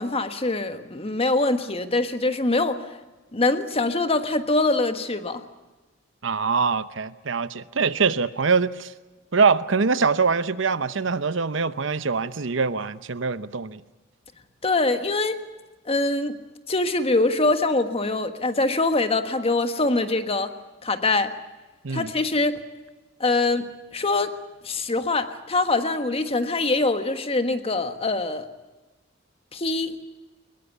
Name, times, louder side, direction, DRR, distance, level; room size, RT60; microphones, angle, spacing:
voice 1, 0.0-2.8 3.3-5.4 14.6-15.4 15.9-16.4 16.7-20.5 20.8-21.3 21.9-22.6 23.2-24.3 24.6-28.5 29.5-30.0, left 2 dB, 30° left, 9 dB, 1.5 m, -23 dB
voice 2, 6.2-8.9 9.3-13.8 21.8-22.1, right 5 dB, 70° right, 14 dB, 0.9 m, -23 dB
22.0 x 21.0 x 8.3 m, 1.2 s
head